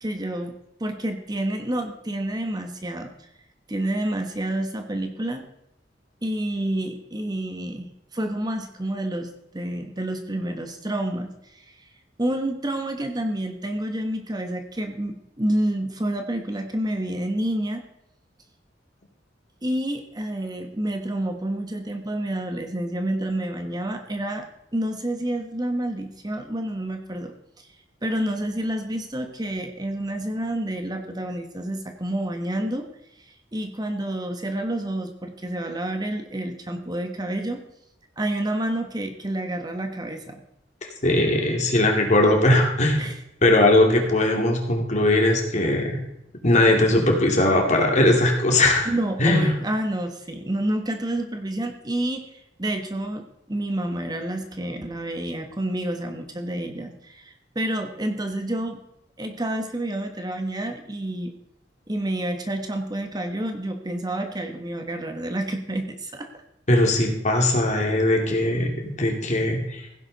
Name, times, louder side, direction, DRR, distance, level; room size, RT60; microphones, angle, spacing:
voice 1, 0.0-3.1 3.7-5.4 6.2-7.9 8.1-11.9 12.2-17.8 19.6-24.5 24.7-27.7 28.0-32.9 33.3-37.6 38.2-40.4 43.0-43.2 48.8-58.8 59.2-61.3 61.9-66.3, right 1 dB, 20° right, 5 dB, 1.2 m, -29 dB
voice 2, 41.0-43.0 43.4-46.0 46.4-48.9 49.2-49.5 66.7-69.8, left 1 dB, 40° left, 2 dB, 2.6 m, -19 dB
16.0 x 10.5 x 4.1 m, 0.83 s
head